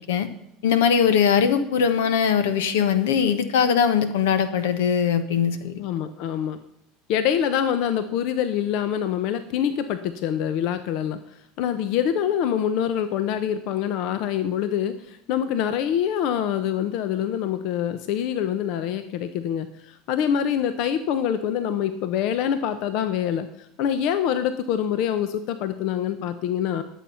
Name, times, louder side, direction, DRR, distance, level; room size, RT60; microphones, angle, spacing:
voice 1, 0.6-5.8, left 7 dB, 90° left, 11 dB, 1.1 m, -21 dB
voice 2, 5.8-6.6 7.1-11.2 11.6-26.8, left 9 dB, 65° left, 11 dB, 0.7 m, -25 dB
11.5 x 7.3 x 5.6 m, 0.78 s
supercardioid pair, 110°, 0 cm